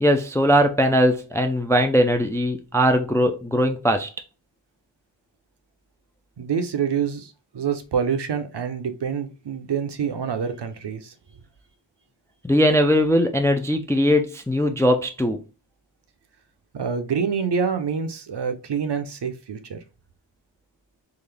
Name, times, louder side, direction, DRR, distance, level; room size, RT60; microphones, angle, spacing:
voice 1, 0.0-4.1 12.4-15.4, equal, 5° left, 0.3 m, -20 dB
voice 2, 6.4-11.1 16.7-19.8, right 6 dB, 60° right, 0.7 m, -26 dB
3.8 x 2.5 x 3.2 m
wide cardioid pair, 110°, 46 cm